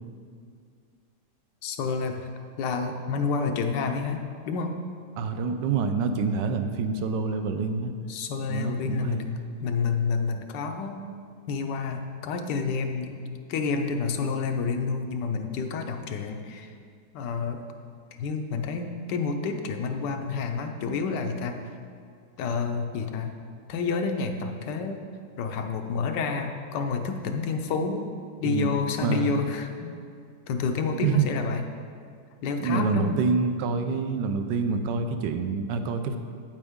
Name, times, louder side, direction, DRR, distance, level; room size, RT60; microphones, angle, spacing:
voice 1, 1.6-2.3 2.6-4.8 8.1-9.3 9.6-11.0 11.5-13.1 13.5-16.7 17.1-17.6 18.2-21.6 22.4-23.3 23.7-25.0 25.4-28.1 28.4-29.9 30.5-31.6 32.4-33.2, left 5 dB, 85° left, 5 dB, 1.3 m, -29 dB
voice 2, 5.2-7.9 8.5-9.3 28.4-28.7 29.0-29.3 30.9-31.3 32.6-36.2, right 5 dB, 80° right, 7 dB, 1.3 m, -27 dB
8.7 x 8.1 x 3.6 m, 2.2 s
omnidirectional pair, 1.8 m